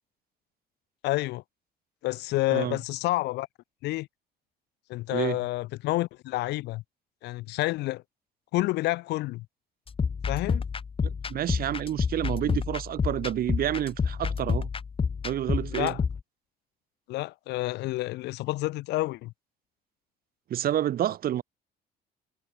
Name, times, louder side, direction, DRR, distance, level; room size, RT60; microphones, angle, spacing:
voice 1, 1.0-1.4 2.0-3.5 3.8-4.1 4.9-6.8 7.2-8.0 8.5-9.5 10.3-10.6 15.7-16.0 17.1-19.3, left 19 dB, 85° left, 4.2 m, -29 dB
sound 1, 9.9-16.2, left 5 dB, 30° left, 6.6 m, -29 dB
voice 2, 11.0-14.7 15.2-16.0 20.5-21.4, right 11 dB, 60° right, 4.7 m, -29 dB
cardioid pair, 110°, 17 cm